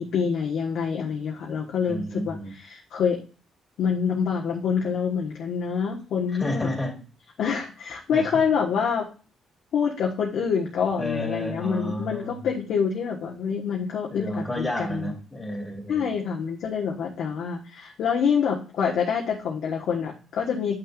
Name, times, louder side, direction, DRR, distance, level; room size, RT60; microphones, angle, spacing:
voice 1, 0.0-3.2 3.8-6.7 7.4-9.1 9.7-15.1 15.9-20.8, left 6 dB, 75° left, -1 dB, 1.5 m, -26 dB
voice 2, 1.9-2.5 6.3-7.0 8.1-8.3 11.0-12.5 14.1-16.1, left 1 dB, 20° left, -1 dB, 2.9 m, -31 dB
9.4 x 6.0 x 2.6 m, 0.36 s
cardioid pair, 90°, 0 cm